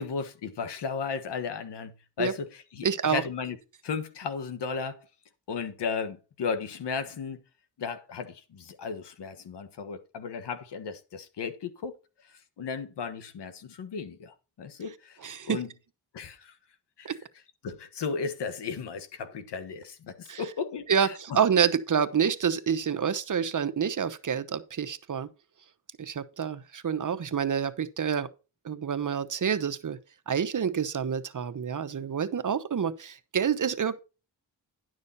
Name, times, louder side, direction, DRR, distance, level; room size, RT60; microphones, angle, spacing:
voice 1, 0.0-3.6 3.8-5.1 5.5-7.4 7.8-11.9 12.6-15.2 15.4-15.7 16.1-16.5 17.0-17.1 17.6-21.1, left 5 dB, 85° left, 1.4 m, -35 dB
voice 2, 2.8-3.2 15.2-15.6 17.0-17.2 20.3-20.4 20.9-25.3 26.0-28.3 28.6-30.0 30.3-34.0, right 7 dB, 50° right, 1.0 m, -28 dB
11.0 x 6.3 x 4.1 m
cardioid pair, 85°, 40 cm